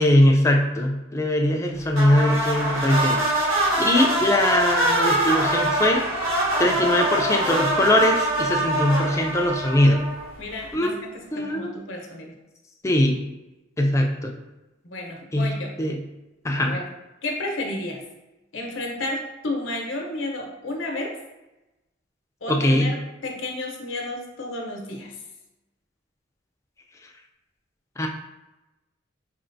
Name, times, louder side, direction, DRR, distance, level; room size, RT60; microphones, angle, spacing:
voice 1, 0.0-3.5 3.8-6.0 6.6-10.0 10.7-11.0 11.3-11.7 12.8-13.2 13.8-14.3 15.3-15.5 15.8-16.0 16.4-16.8 22.5-22.9 28.0-28.1, left 1 dB, 15° left, 2 dB, 0.4 m, -21 dB
sound 1, 1.9-10.4, right 1 dB, 85° right, 1.4 m, -24 dB
voice 2, 10.4-12.4 14.8-15.7 16.6-16.9 17.2-18.0 18.5-21.1 22.4-23.0 23.2-25.2, left 2 dB, 70° left, 0 dB, 0.8 m, -32 dB
4.3 x 2.9 x 2.6 m, 1.0 s
head